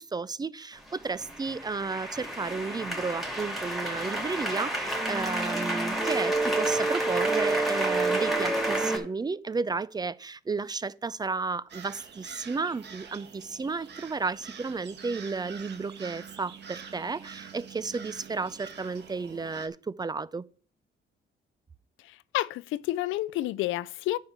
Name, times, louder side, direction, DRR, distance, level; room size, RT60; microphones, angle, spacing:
voice 1, 0.0-20.4, right 4 dB, 20° right, 0.4 m, -33 dB
sound 1, 0.9-9.0, right 2 dB, ahead, 2.6 m, -29 dB
sound 2, 11.7-19.7, right 7 dB, 60° right, 1.4 m, -46 dB
voice 2, 22.0-24.2, left 15 dB, 85° left, 0.4 m, -30 dB
9.2 x 4.6 x 6.6 m
cardioid pair, 90°, 20 cm